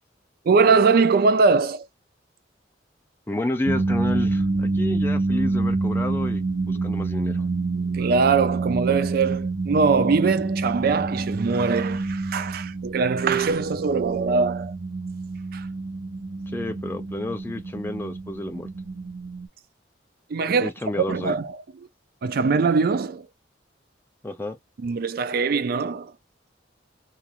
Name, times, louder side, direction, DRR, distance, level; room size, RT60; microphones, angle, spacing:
voice 1, 0.5-1.9 7.9-14.7 15.5-15.7 20.3-21.6 22.2-23.3 24.8-26.1, right 4 dB, 55° right, 0.4 m, -22 dB
voice 2, 3.3-7.4 16.5-18.7 20.6-21.3 24.2-24.6, left 1 dB, 10° left, 0.4 m, -30 dB
sound 1, 3.7-19.5, right 3 dB, 70° right, 0.9 m, -27 dB
2.8 x 2.4 x 2.4 m
head